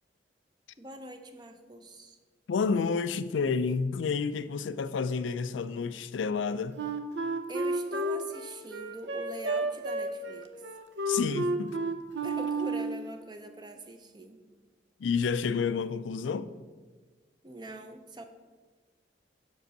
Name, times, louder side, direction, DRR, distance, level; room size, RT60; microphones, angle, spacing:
voice 1, 0.8-2.2 7.5-10.6 12.2-14.4 17.4-18.2, right 1 dB, 25° right, 0.6 m, -43 dB
voice 2, 2.5-6.8 11.1-11.8 15.0-16.5, left 5 dB, 90° left, 0.4 m, -30 dB
Wind instrument woodwind instrument, 6.8-13.1, right 2 dB, 70° right, 0.7 m, -31 dB
6.1 x 5.2 x 6.5 m
head